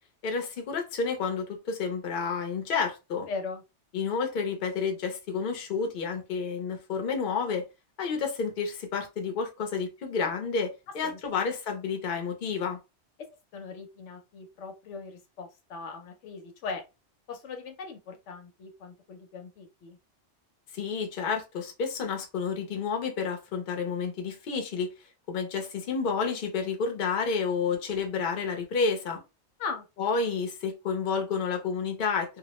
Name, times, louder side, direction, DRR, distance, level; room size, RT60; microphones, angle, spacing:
voice 1, 0.2-3.3 3.9-7.6 8.0-12.8 20.7-24.9 25.3-29.2 30.0-32.4, left 5 dB, 55° left, 0.8 m, -30 dB
voice 2, 3.3-3.6 11.0-11.2 13.5-16.8 17.3-20.0 29.6-29.8, left 4 dB, 80° left, 1.0 m, -39 dB
2.4 x 2.0 x 2.9 m
omnidirectional pair, 1.2 m